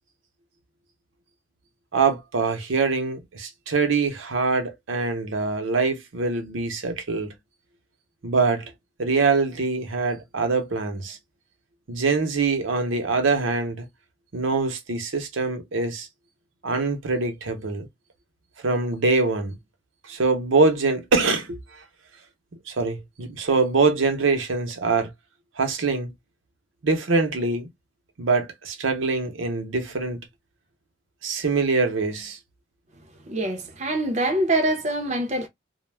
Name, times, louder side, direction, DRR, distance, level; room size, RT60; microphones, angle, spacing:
voice 1, 1.9-7.3 8.2-8.7 9.0-11.2 11.9-13.9 14.3-16.1 16.6-17.9 18.6-19.6 20.0-21.8 22.7-25.1 25.6-26.1 26.8-27.7 28.2-30.3 31.2-32.4, right 4 dB, 80° right, 0.7 m, -24 dB
voice 2, 33.3-35.5, right 1 dB, 35° right, 0.5 m, -24 dB
2.2 x 2.0 x 3.1 m
head